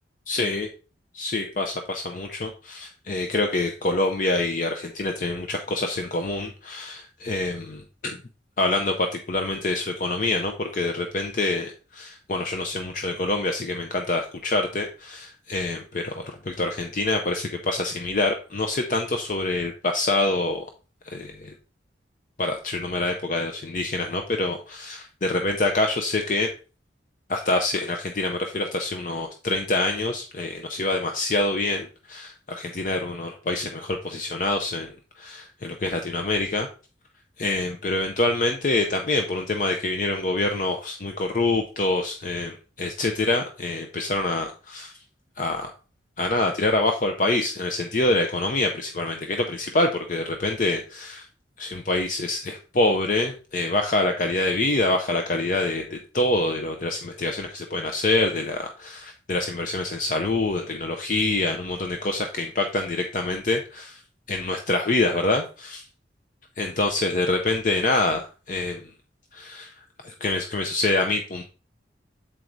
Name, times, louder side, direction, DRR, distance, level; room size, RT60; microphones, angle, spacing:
voice 1, 0.3-0.7 1.1-8.2 8.6-20.6 21.0-21.5 22.4-26.5 27.3-36.7 37.4-44.9 45.4-45.7 46.2-51.3 51.6-64.0 64.3-65.9 66.6-68.8 69.3-69.7 70.0-71.4, left 2 dB, 45° left, 4 dB, 0.6 m, -26 dB
7.4 x 4.6 x 3.9 m, 0.36 s
head